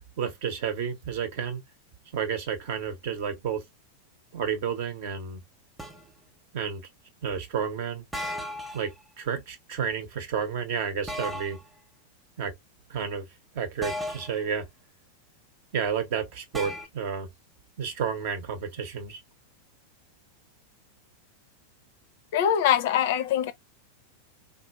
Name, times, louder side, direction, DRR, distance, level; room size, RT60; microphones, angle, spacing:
voice 1, 0.2-1.6 2.1-3.6 4.3-5.4 6.5-6.8 7.2-8.0 8.7-8.9 9.2-11.6 12.4-12.5 12.9-13.3 13.5-14.7 15.7-17.3 17.8-19.2, right 7 dB, 50° right, 0.8 m, -31 dB
sound 1, 5.8-6.1 8.1-8.9 11.1-11.6 13.8-14.4 16.5-16.9, equal, 10° right, 0.8 m, -35 dB
voice 2, 22.3-23.5, left 10 dB, 50° left, 0.4 m, -23 dB
3.3 x 2.6 x 2.2 m
figure-of-eight pair, 90°, 0 cm